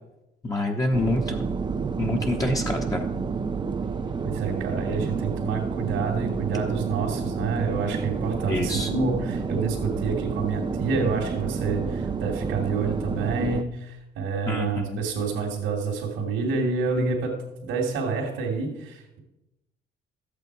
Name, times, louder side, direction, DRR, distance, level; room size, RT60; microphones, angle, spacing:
voice 1, 0.4-1.4 2.0-3.0 8.5-8.9 14.5-15.0, left 1 dB, 15° left, 1 dB, 1.2 m, -26 dB
sound 1, 0.9-13.6, right 5 dB, 25° right, 0.6 m, -29 dB
voice 2, 4.2-17.3 17.6-19.2, right 4 dB, 80° right, -4 dB, 2.4 m, -28 dB
13.0 x 8.5 x 4.7 m, 0.94 s
cardioid pair, 100°, 20 cm